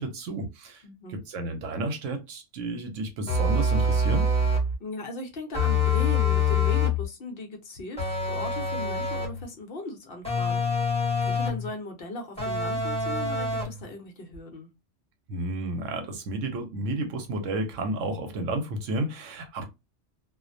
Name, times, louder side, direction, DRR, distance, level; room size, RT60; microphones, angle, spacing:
voice 1, 0.0-0.8 1.1-4.3 15.3-19.7, right 2 dB, 90° right, 1.1 m, -31 dB
voice 2, 0.8-1.2 4.8-10.6 11.2-14.7, left 2 dB, 55° left, 0.8 m, -38 dB
sound 1, 3.3-4.7 5.5-7.0 8.0-9.4 10.2-11.7 12.4-13.8, left 2 dB, 5° left, 0.9 m, -25 dB
2.5 x 2.1 x 2.5 m
omnidirectional pair, 1.3 m